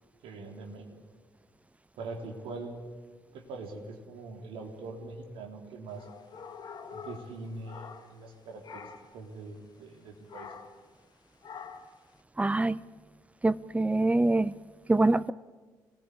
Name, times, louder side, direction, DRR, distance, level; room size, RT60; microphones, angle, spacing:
voice 1, 0.2-1.0 2.0-2.8 3.3-6.1 6.9-10.5, right 3 dB, 60° right, 2 dB, 3.7 m, -43 dB
sound 1, 5.9-8.3 8.6-9.2 10.3-10.8 11.4-12.0, left 6 dB, 45° left, 1.9 m, -46 dB
voice 2, 12.4-12.8 13.4-14.5 14.9-15.3, right 2 dB, 15° right, 16 dB, 0.8 m, -24 dB
27.5 x 20.0 x 8.5 m, 1.4 s
figure-of-eight pair, 45°, 10 cm